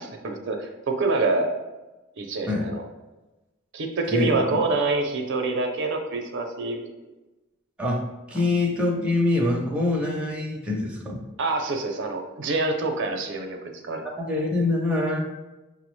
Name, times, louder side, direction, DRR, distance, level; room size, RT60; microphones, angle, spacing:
voice 1, 0.0-1.5 2.2-2.8 3.7-6.9 11.4-14.0, right 3 dB, 60° right, 4 dB, 0.5 m, -26 dB
voice 2, 4.1-4.6 7.8-8.0 8.3-11.2 14.3-15.2, left 2 dB, 5° right, -2 dB, 0.5 m, -24 dB
5.6 x 2.0 x 3.0 m, 1.1 s
head